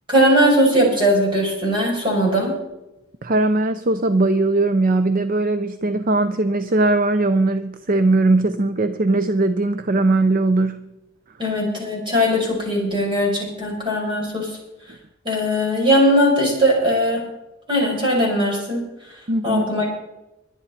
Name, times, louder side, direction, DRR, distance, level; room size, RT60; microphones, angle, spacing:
voice 1, 0.1-2.5 11.4-14.5 15.2-17.2 17.7-18.8 19.4-19.9, equal, 25° right, -1 dB, 5.8 m, -19 dB
voice 2, 3.2-10.9 19.3-19.6, right 2 dB, 45° right, 10 dB, 0.6 m, -19 dB
22.5 x 9.3 x 4.3 m, 0.95 s
head